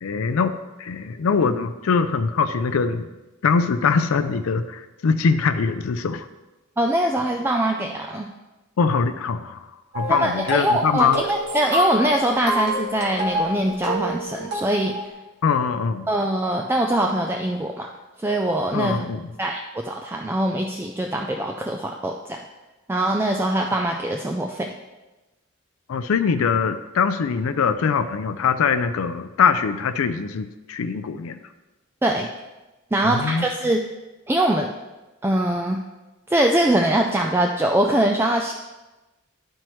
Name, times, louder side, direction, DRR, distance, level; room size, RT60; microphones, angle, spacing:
voice 1, 0.0-0.5 0.8-3.1 3.4-6.3 8.8-9.6 9.9-11.2 15.4-16.1 18.7-19.2 25.9-31.4 33.0-33.5, left 5 dB, 90° left, 10 dB, 0.4 m, -22 dB
voice 2, 6.8-8.3 10.1-15.1 16.1-17.9 18.2-19.0 19.4-22.4 22.9-24.7 32.0-32.3 32.9-33.8 34.3-34.7 35.2-35.8 36.3-38.5, right 1 dB, 10° right, 2 dB, 0.3 m, -22 dB
sound 1, 9.9-15.1, equal, 50° right, 1.4 m, -28 dB
11.5 x 4.4 x 3.1 m, 1.1 s
head